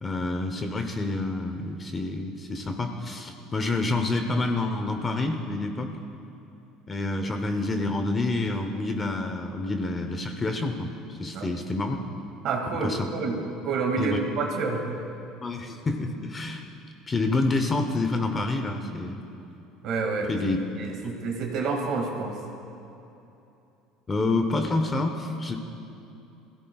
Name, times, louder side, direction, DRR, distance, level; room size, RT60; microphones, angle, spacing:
voice 1, 0.0-5.9 6.9-12.0 12.8-13.1 14.0-14.2 15.4-16.6 17.1-19.2 20.3-20.6 24.1-25.6, left 2 dB, 15° left, 5 dB, 0.7 m, -28 dB
voice 2, 12.4-14.9 19.8-20.3 20.8-22.4, right 4 dB, 45° right, 1 dB, 2.1 m, -28 dB
25.0 x 16.0 x 2.4 m, 2.8 s
cardioid pair, 165°, 0 cm